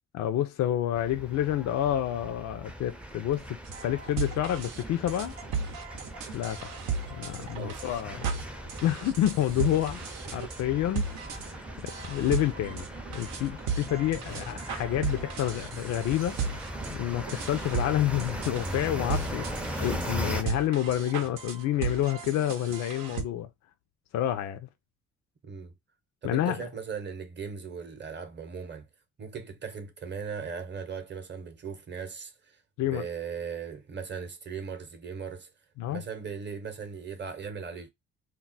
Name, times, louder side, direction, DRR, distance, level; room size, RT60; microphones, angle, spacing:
voice 1, 0.1-3.5 3.8-5.4 6.3-6.7 7.1-8.3 8.8-10.0 10.3-11.1 11.8-16.4 16.9-19.5 19.8-23.5 24.1-24.7 26.2-26.7 32.8-33.1 35.8-36.0, left 12 dB, 65° left, 0.4 m, -29 dB
sound 1, 1.0-20.4, equal, 5° right, 0.4 m, -39 dB
sound 2, 3.7-23.2, right 5 dB, 85° right, 0.7 m, -36 dB
voice 2, 7.5-7.9 25.4-25.7 26.2-28.9 29.2-35.5 35.9-37.9, right 6 dB, 35° right, 0.7 m, -38 dB
2.3 x 2.1 x 3.9 m
cardioid pair, 90°, 30 cm